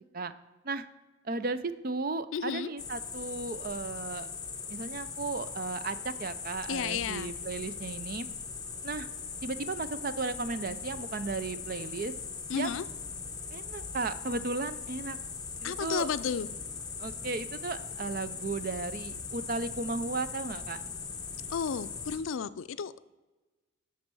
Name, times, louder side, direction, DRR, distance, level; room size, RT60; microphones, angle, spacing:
voice 1, 1.2-4.3 4.7-8.3 8.8-9.1 9.4-12.1 12.5-12.7 13.5-15.2 15.6-16.1 17.0-20.8, right 3 dB, 45° right, 13 dB, 0.5 m, -35 dB
voice 2, 2.3-2.7 6.7-7.3 12.5-12.9 15.6-16.5 21.5-23.0, left 6 dB, 85° left, 14 dB, 0.4 m, -33 dB
sound 1, 2.8-22.2, left 5 dB, 20° left, 1.0 m, -40 dB
11.5 x 4.3 x 6.1 m, 1.2 s
head